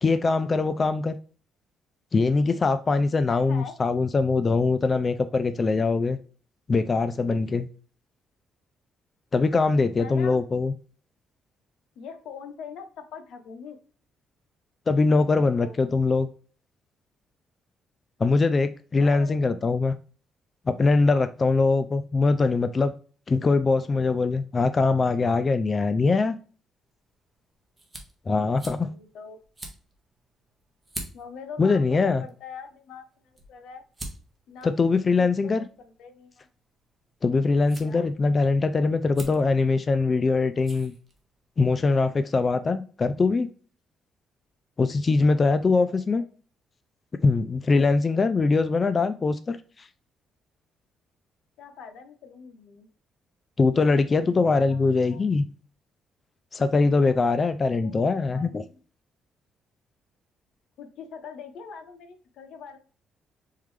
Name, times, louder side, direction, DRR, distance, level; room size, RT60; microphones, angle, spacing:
voice 1, 0.0-1.2 2.1-6.2 6.7-7.7 9.3-10.7 14.9-16.3 18.2-19.9 20.7-22.9 23.3-26.4 28.3-28.9 31.6-32.2 34.6-35.6 37.2-40.9 41.6-43.5 44.8-46.2 47.2-49.9 53.6-55.5 56.5-58.6, left 3 dB, 30° left, 11 dB, 0.3 m, -22 dB
voice 2, 3.3-3.8 9.9-10.4 12.0-13.8 15.3-15.7 19.0-19.8 28.6-29.4 31.1-33.8 34.5-34.7 35.2-36.5 37.8-38.1 45.6-46.3 51.6-52.9 54.5-55.3 57.8-58.8 60.8-62.8, left 6 dB, 80° left, 8 dB, 0.8 m, -43 dB
sound 1, 26.8-41.6, right 1 dB, 15° right, 1.2 m, -47 dB
4.3 x 3.7 x 3.2 m, 0.40 s
cardioid pair, 115°, 0 cm